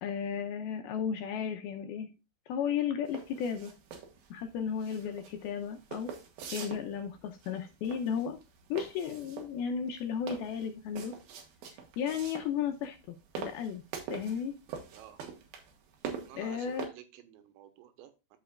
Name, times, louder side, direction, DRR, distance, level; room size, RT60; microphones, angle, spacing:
voice 1, 0.0-2.1 2.5-3.7 4.3-6.1 6.5-8.4 8.7-11.2 12.0-13.8 14.1-14.5 16.4-16.9, left 7 dB, 80° left, 5 dB, 2.3 m, -34 dB
sound 1, 3.1-16.9, right 6 dB, 65° right, 2.9 m, -44 dB
voice 2, 16.2-18.4, right 11 dB, 85° right, 8 dB, 3.3 m, -52 dB
13.5 x 5.2 x 2.4 m, 0.27 s
omnidirectional pair, 5.1 m